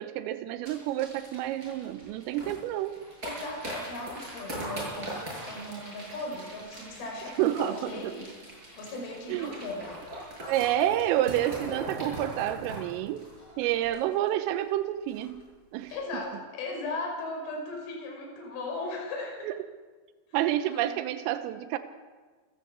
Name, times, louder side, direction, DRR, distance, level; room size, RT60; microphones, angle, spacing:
voice 1, 0.0-2.9 7.4-8.2 9.3-9.5 10.5-13.2 13.6-15.4 15.7-15.9 19.4-19.5 20.3-21.8, right 13 dB, 85° right, 9 dB, 3.7 m, -29 dB
sound 1, 0.6-14.4 14.7-14.8 15.1-15.4 15.8-15.9, right 1 dB, 15° right, 8.3 m, -41 dB
voice 2, 3.2-8.3 8.8-10.0 15.9-19.5 20.7-20.9, left 2 dB, 50° left, 1 dB, 7.2 m, -37 dB
29.0 x 16.5 x 8.1 m, 1.4 s
omnidirectional pair, 5.8 m